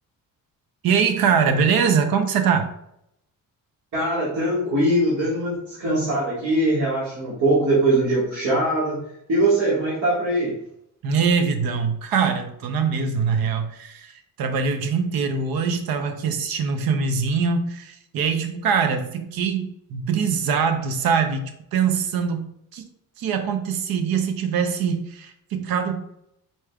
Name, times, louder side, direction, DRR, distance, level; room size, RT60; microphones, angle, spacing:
voice 1, 0.8-2.7 11.0-22.9 23.2-26.1, right 6 dB, 85° right, 7 dB, 0.7 m, -23 dB
voice 2, 3.9-9.0 9.3-10.6, right 1 dB, 55° right, -9 dB, 1.8 m, -21 dB
4.9 x 4.3 x 2.3 m, 0.75 s
cardioid pair, 155°, 35 cm